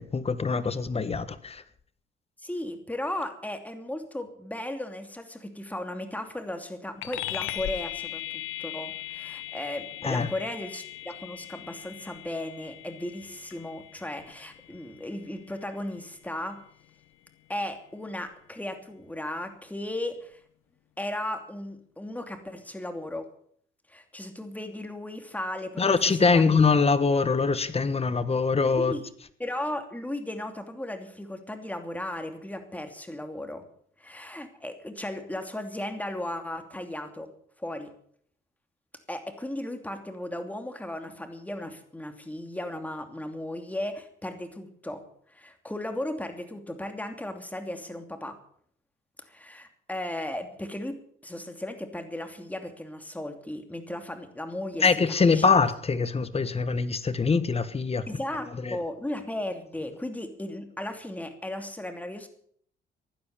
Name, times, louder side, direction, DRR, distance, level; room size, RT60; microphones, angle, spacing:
voice 1, 0.0-1.6 10.0-10.3 25.8-28.9 54.8-58.1 58.6-58.8, left 4 dB, 30° left, 1.3 m, -23 dB
voice 2, 2.4-16.6 17.5-20.4 21.0-23.3 23.9-26.4 28.8-29.0 29.4-33.7 34.0-37.3 37.6-37.9 39.1-45.0 45.3-48.4 49.2-54.9 55.2-55.5 58.1-62.3, left 1 dB, 5° left, 2.7 m, -36 dB
sound 1, 7.0-16.8, left 13 dB, 85° left, 1.1 m, -39 dB
16.0 x 11.0 x 6.8 m
cardioid pair, 90°, 20 cm